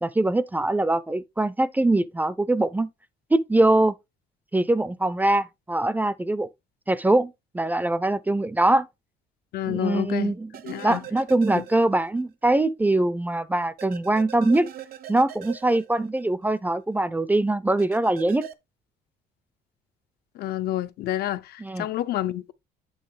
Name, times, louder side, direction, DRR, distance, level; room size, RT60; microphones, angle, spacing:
voice 1, 0.0-2.9 3.3-3.9 4.5-6.5 6.9-8.9 9.7-10.5 10.8-14.7 15.1-18.5 21.6-21.9, right 2 dB, 10° right, 0.4 m, -23 dB
voice 2, 9.5-10.3 10.6-11.0 11.5-11.6 20.4-22.5, left 13 dB, 70° left, 0.7 m, -29 dB
sound 1, 10.5-12.2 12.5-12.6 13.8-16.6 17.8-18.5, right 11 dB, 65° right, 0.9 m, -41 dB
8.8 x 3.1 x 4.9 m
cardioid pair, 110°, 17 cm